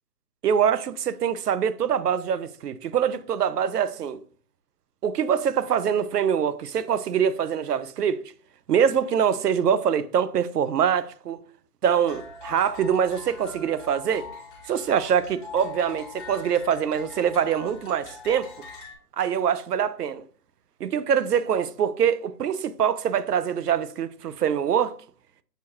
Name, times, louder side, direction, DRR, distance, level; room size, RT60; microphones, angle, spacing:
voice 1, 0.4-4.2 5.0-8.2 8.7-11.4 11.8-14.3 14.7-18.5 19.2-20.2 20.8-25.0, right 8 dB, 75° right, 0.6 m, -24 dB
sound 1, 12.1-19.0, left 4 dB, 30° left, 1.2 m, -42 dB
6.7 x 2.3 x 3.0 m
figure-of-eight pair, 140°, 48 cm